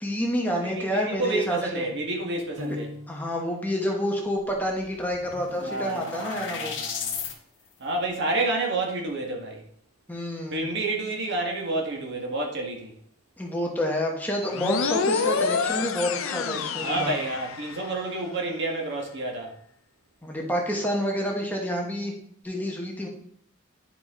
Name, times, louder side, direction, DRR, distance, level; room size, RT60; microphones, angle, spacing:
voice 1, 0.0-1.9 3.1-6.7 10.1-10.6 13.4-17.1 20.2-22.1 22.4-23.1, equal, 10° left, 1.1 m, -28 dB
voice 2, 0.6-2.9 5.6-7.2 7.8-9.6 10.5-12.9 16.8-19.6, right 2 dB, 55° right, 1.7 m, -29 dB
Piano, 2.6-3.6, left 2 dB, 85° right, 1.0 m, -37 dB
sound 1, 4.5-4.6 4.8-7.3, left 6 dB, 60° left, 1.5 m, -35 dB
sound 2, 14.5-18.0, left 5 dB, 80° left, 0.6 m, -28 dB
10.5 x 4.9 x 3.7 m
head